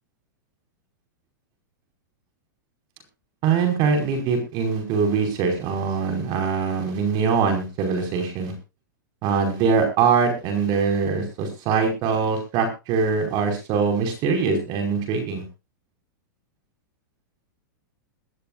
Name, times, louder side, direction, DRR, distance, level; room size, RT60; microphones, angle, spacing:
voice 1, 3.4-8.5 9.2-15.4, right 5 dB, 40° right, 5 dB, 5.2 m, -23 dB
22.0 x 13.0 x 2.5 m, 0.28 s
hypercardioid pair, 135°, 11 cm